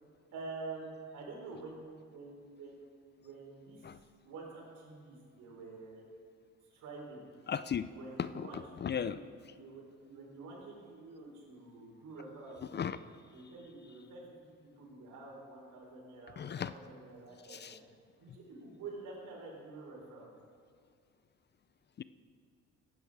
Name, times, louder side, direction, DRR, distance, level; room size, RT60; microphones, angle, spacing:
voice 1, 0.3-2.8 3.2-3.8 4.2-6.0 6.7-7.2 7.9-9.2 9.6-12.9 13.3-14.2 14.8-17.8 18.2-20.3, right 3 dB, 80° right, -2 dB, 4.1 m, -48 dB
voice 2, 7.5-7.9 8.2-9.2 12.7-13.0 16.4-16.7 17.5-17.8 22.0-22.1, left 8 dB, 35° left, 14 dB, 0.4 m, -36 dB
15.5 x 9.8 x 4.9 m, 2.2 s
cardioid pair, 90°, 30 cm